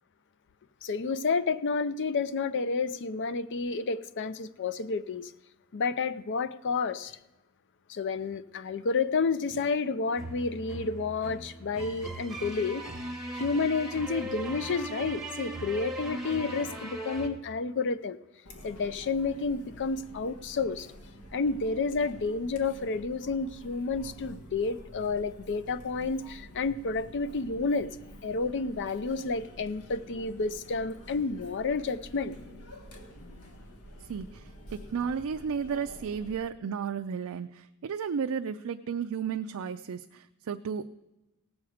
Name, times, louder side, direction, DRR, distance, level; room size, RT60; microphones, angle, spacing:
voice 1, 0.8-5.3 5.7-7.2 7.9-12.8 13.3-18.2 18.6-20.9 21.3-27.9 28.2-32.4, left 4 dB, 55° left, 15 dB, 0.5 m, -30 dB
sound 1, 10.2-17.3, right 1 dB, 5° right, 1.4 m, -39 dB
Chatter, 18.5-36.4, equal, 85° left, 1.6 m, -49 dB
voice 2, 34.0-40.9, right 6 dB, 70° right, 7 dB, 0.4 m, -33 dB
18.0 x 7.2 x 4.9 m, 1.0 s
head